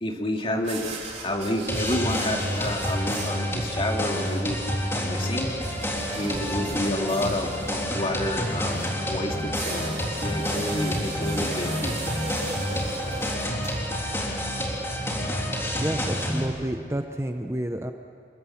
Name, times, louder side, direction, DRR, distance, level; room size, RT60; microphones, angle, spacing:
voice 1, 0.0-0.9 1.2-4.6 4.9-5.5 6.1-9.9 10.2-11.9, left 1 dB, 30° left, 2 dB, 2.4 m, -29 dB
sound 1, 0.6-14.4, right 3 dB, 40° right, 3.7 m, -39 dB
sound 2, 1.7-16.5, equal, 15° left, 3.5 m, -29 dB
voice 2, 15.8-17.9, right 1 dB, 15° right, 6 dB, 0.8 m, -29 dB
29.0 x 19.5 x 7.3 m, 2.3 s
head